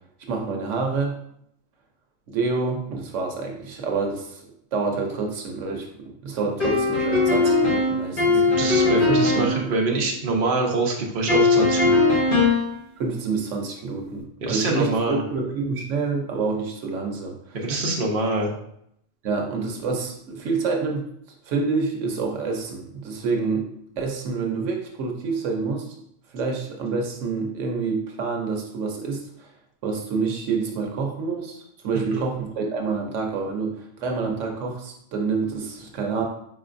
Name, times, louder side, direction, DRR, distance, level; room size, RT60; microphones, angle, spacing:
voice 1, 0.3-1.2 2.3-8.4 8.8-9.7 13.0-17.6 19.2-21.0 21.4-23.7 24.0-25.9 26.3-29.5 29.8-36.3, right 4 dB, 80° right, 1 dB, 1.1 m, -28 dB
sound 1, 6.6-9.6 11.3-12.7, left 3 dB, 45° left, 1.6 m, -19 dB
voice 2, 8.6-12.2 14.4-15.2 17.5-18.5 31.9-32.2, right 3 dB, 50° right, -1 dB, 0.9 m, -25 dB
4.5 x 4.0 x 2.5 m, 0.72 s
omnidirectional pair, 1.3 m